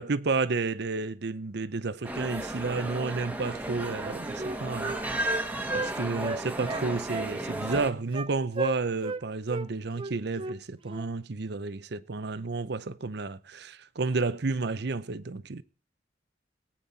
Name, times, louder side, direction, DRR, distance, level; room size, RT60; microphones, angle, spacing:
voice 1, 0.0-5.4 5.7-15.6, right 3 dB, 65° right, 0.7 m, -31 dB
sound 1, 2.0-7.9, right 1 dB, 10° right, 1.3 m, -34 dB
Wind instrument woodwind instrument, 3.9-5.9 6.2-7.3 7.7-8.3 8.5-9.2 9.5-9.7 10.0-10.6 10.9-11.1, right 3 dB, 30° right, 0.6 m, -35 dB
19.0 x 9.1 x 4.1 m
head